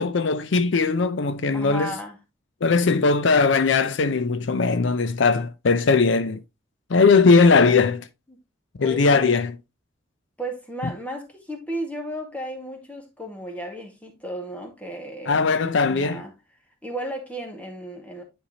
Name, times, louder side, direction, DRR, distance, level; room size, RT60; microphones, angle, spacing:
voice 1, 0.0-1.9 2.6-6.4 6.9-8.1 8.8-9.6 15.3-16.2, left 4 dB, 70° left, 0.5 m, -19 dB
voice 2, 1.5-2.2 8.3-8.4 8.8-9.5 10.4-15.6 15.8-16.3 16.8-18.2, equal, 5° left, 1.8 m, -34 dB
10.0 x 4.6 x 2.8 m
head